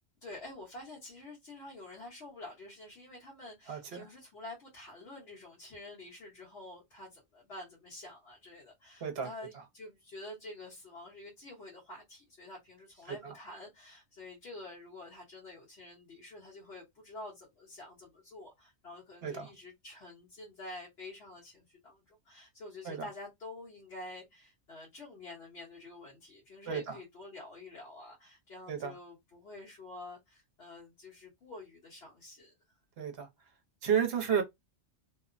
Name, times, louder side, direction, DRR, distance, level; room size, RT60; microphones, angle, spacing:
voice 1, 0.2-32.5, left 2 dB, 60° left, 1.2 m, -48 dB
voice 2, 3.7-4.0 9.0-9.3 13.1-13.3 19.2-19.5 22.8-23.1 26.7-27.0 28.7-28.9 33.0-33.3 33.8-34.4, right 7 dB, 60° right, 0.9 m, -32 dB
2.8 x 2.0 x 2.5 m
omnidirectional pair, 1.2 m